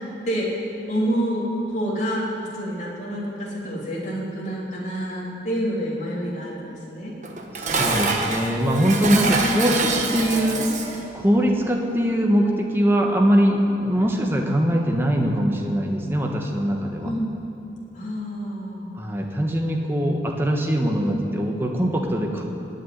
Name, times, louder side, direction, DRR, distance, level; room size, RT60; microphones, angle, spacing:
voice 1, 0.9-2.2 2.5-7.1 9.1-9.7 14.0-14.1 17.0-17.4 17.9-18.9 21.0-21.2, equal, 40° left, -5 dB, 3.3 m, -28 dB
Dishes pots and pans, 7.2-11.1, right 3 dB, 40° right, 1.3 m, -25 dB
voice 2, 7.5-10.7 11.1-17.1 18.9-22.4, equal, 15° right, 1 dB, 1.3 m, -22 dB
19.5 x 6.9 x 9.4 m, 2.7 s
head